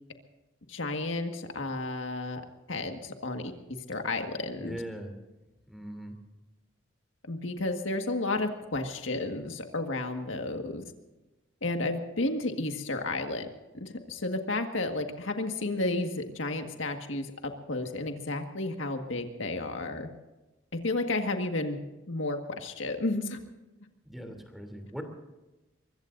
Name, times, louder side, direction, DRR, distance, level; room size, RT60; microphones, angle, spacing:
voice 1, 0.7-2.4 2.7-3.5 3.9-4.8 7.2-10.8 11.6-13.5 13.8-20.1 20.8-21.8 22.1-23.4, left 2 dB, 75° left, 5 dB, 1.8 m, -32 dB
voice 2, 4.6-5.1 5.7-6.2 24.0-25.0, equal, ahead, 4 dB, 3.1 m, -40 dB
24.0 x 22.5 x 2.7 m, 1.1 s
head